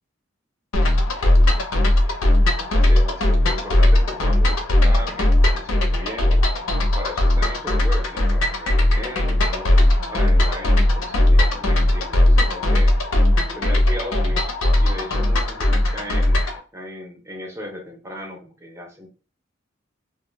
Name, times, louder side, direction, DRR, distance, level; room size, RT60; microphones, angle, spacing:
sound 1, 0.7-16.6, left 1 dB, 90° left, 0.5 m, -18 dB
voice 1, 2.7-6.7 7.0-9.8 10.1-13.0 13.5-14.5 14.8-19.1, left 1 dB, 15° right, 1 dB, 0.6 m, -36 dB
2.2 x 2.0 x 3.1 m, 0.36 s
head